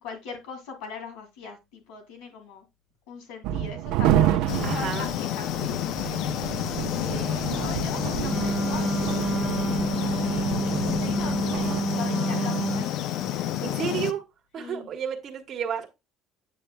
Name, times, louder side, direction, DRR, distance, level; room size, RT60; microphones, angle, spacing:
voice 1, 0.0-2.7 3.1-13.1 14.6-14.9, left 5 dB, 85° left, 2.6 m, -41 dB
sound 1, 3.4-11.8, right 11 dB, 70° right, 0.6 m, -29 dB
sound 2, 4.5-14.1, left 12 dB, 55° left, 0.5 m, -29 dB
voice 2, 4.6-5.1 13.6-14.3 14.5-15.9, right 8 dB, 35° right, 1.4 m, -31 dB
Wind instrument woodwind instrument, 8.2-12.9, right 3 dB, 20° right, 0.7 m, -29 dB
8.5 x 7.8 x 2.2 m
cardioid pair, 160°, 0 cm